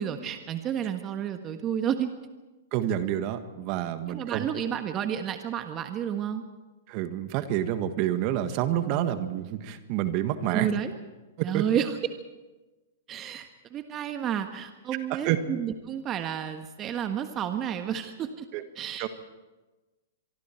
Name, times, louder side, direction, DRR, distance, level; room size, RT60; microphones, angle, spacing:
voice 1, 0.0-2.1 4.1-6.4 10.5-10.9 11.4-11.9 13.1-18.4 18.7-19.1, right 9 dB, 30° right, 7 dB, 1.4 m, -31 dB
voice 2, 2.7-4.5 6.9-10.7 11.4-11.6 15.1-15.4 18.5-18.6 19.0-19.1, right 12 dB, 45° right, 10 dB, 1.6 m, -28 dB
24.5 x 23.5 x 4.5 m, 1.2 s
hypercardioid pair, 115°, 0 cm